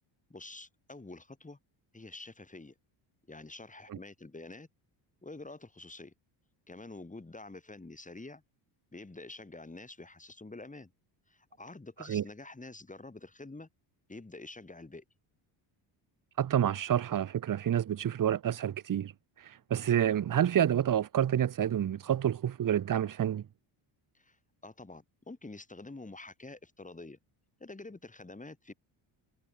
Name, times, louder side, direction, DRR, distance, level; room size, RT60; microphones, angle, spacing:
voice 1, 0.3-1.6 1.9-2.7 3.3-4.7 5.2-6.1 6.7-8.4 8.9-10.9 11.3-13.7 14.1-15.0 24.1-24.4 24.6-27.2 27.6-28.7, left 2 dB, 15° left, 5.8 m, -47 dB
voice 2, 16.4-19.1 19.4-23.4, right 10 dB, 40° right, 1.1 m, -28 dB
cardioid pair, 95°, 49 cm